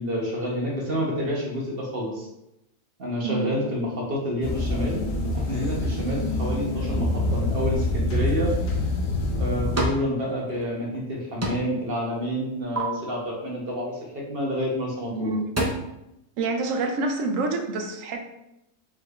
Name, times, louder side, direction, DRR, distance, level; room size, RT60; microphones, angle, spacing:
voice 1, 0.0-2.3 3.0-5.0 5.3-8.5 9.3-15.3, equal, 50° right, -3 dB, 1.0 m, -29 dB
voice 2, 3.2-3.6 15.1-15.7 16.4-18.2, right 3 dB, 75° right, 4 dB, 1.0 m, -27 dB
sound 1, 4.4-9.9, left 2 dB, 80° left, 1.1 m, -26 dB
Cupboard door, 9.1-10.1 10.4-11.1 11.4-11.9 12.2-12.8 14.6-14.8 15.2-15.7, right 1 dB, 25° right, 0.3 m, -30 dB
5.3 x 3.2 x 2.4 m, 0.86 s
omnidirectional pair, 1.4 m